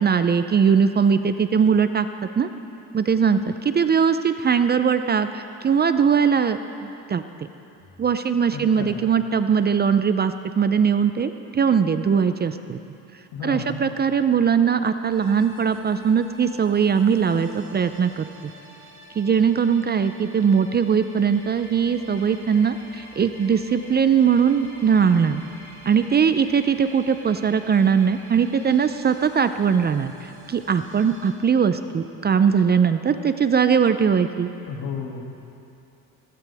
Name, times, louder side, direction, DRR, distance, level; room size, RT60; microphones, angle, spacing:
voice 1, 0.0-2.1 2.4-2.5 2.9-7.2 8.0-12.8 13.4-18.3 19.2-25.4 25.9-34.5, right 6 dB, 30° right, 10 dB, 0.5 m, -20 dB
voice 2, 8.5-9.0 13.3-13.8 34.7-35.2, left 5 dB, 70° left, 0 dB, 2.4 m, -32 dB
sound 1, 15.1-31.3, right 1 dB, 65° right, 3.8 m, -47 dB
19.0 x 15.5 x 3.5 m, 2.7 s
cardioid pair, 95°, 35 cm